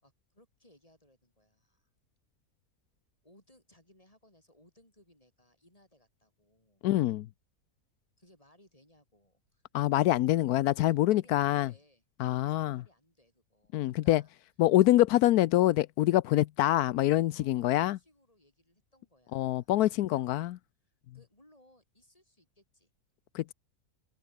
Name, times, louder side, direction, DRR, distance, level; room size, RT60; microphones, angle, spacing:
voice 1, 0.0-1.9 3.2-6.9 8.2-9.7 10.7-14.3 17.3-20.4 20.8-22.9, left 1 dB, 20° left, 8.0 m, -64 dB
voice 2, 6.8-7.3 9.7-11.7 12.2-12.8 13.7-14.2 14.6-18.0 19.3-20.5 23.3-23.5, left 15 dB, 85° left, 1.1 m, -25 dB
omnidirectional pair, 1.6 m